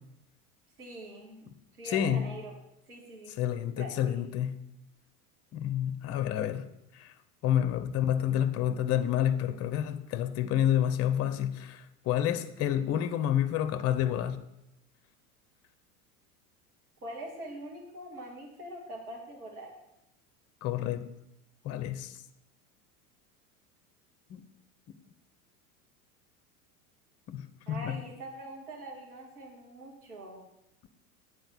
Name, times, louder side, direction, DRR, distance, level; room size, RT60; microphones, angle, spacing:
voice 1, 0.8-2.6 2.9-3.3 3.8-4.2 17.0-19.7 27.7-30.4, right 1 dB, 80° right, 2.0 m, -43 dB
voice 2, 1.8-2.3 3.3-4.5 5.5-6.7 6.9-7.1 7.4-14.4 20.6-21.1 21.6-22.1 24.3-24.4 24.9-25.0 27.3-28.0, left 10 dB, 35° left, 0.7 m, -29 dB
8.0 x 4.7 x 6.9 m
figure-of-eight pair, 80°, 44 cm